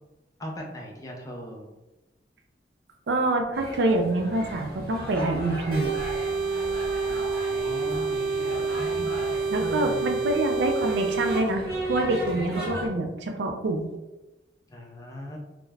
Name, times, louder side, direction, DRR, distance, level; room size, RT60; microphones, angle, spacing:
voice 1, 0.4-1.7 7.0-8.2 9.6-10.3 14.7-15.4, equal, 20° left, -1 dB, 0.4 m, -38 dB
voice 2, 3.1-5.9 9.5-11.6 11.9-13.9, right 2 dB, 75° right, 4 dB, 0.4 m, -26 dB
sound 1, 3.5-12.9, right 1 dB, 55° right, 0.8 m, -37 dB
sound 2, 3.9-5.9 7.6-9.5 11.3-13.3, left 1 dB, 65° left, 0.6 m, -44 dB
sound 3, 5.7-11.4, right 4 dB, 30° right, 0.6 m, -28 dB
2.3 x 2.1 x 3.2 m, 1.0 s
head